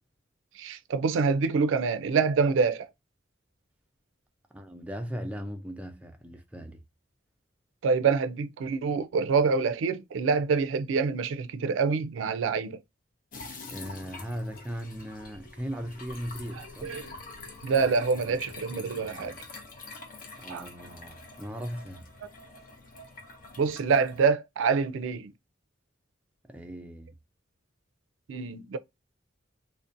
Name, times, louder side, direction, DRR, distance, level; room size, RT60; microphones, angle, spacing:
voice 1, 0.5-2.9 7.8-12.8 16.6-17.1 17.6-19.3 20.5-20.6 23.6-25.3 28.3-28.8, right 5 dB, 85° right, 0.3 m, -26 dB
voice 2, 4.5-6.8 13.7-17.0 18.2-18.4 18.8-19.4 20.4-22.1 26.5-27.1, equal, 5° right, 0.3 m, -38 dB
sound 1, 13.3-24.3, left 3 dB, 45° left, 0.6 m, -45 dB
2.5 x 2.1 x 2.5 m
head